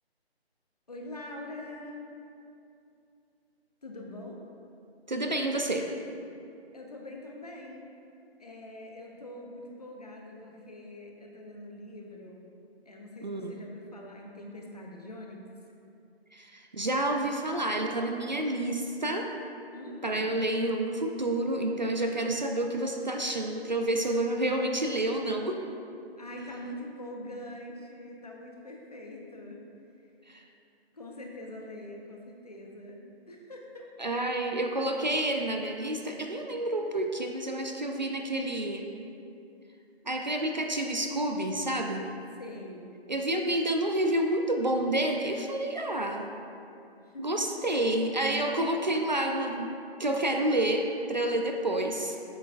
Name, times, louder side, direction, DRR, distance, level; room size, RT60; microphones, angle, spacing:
voice 1, 0.9-2.0 3.8-4.4 6.7-7.9 8.4-12.5 12.9-15.5 19.7-20.3 26.2-29.6 30.9-33.0 33.3-33.9 42.4-42.9 47.0-47.5, left 1 dB, 40° left, 0 dB, 0.7 m, -43 dB
voice 2, 5.1-5.8 13.2-13.6 16.3-19.3 20.0-25.6 30.3-30.4 34.0-38.9 40.0-42.0 43.1-46.3 47.2-49.7 50.0-52.2, right 1 dB, 45° right, 3 dB, 0.4 m, -29 dB
7.9 x 6.8 x 2.4 m, 2.6 s
figure-of-eight pair, 170°, 32 cm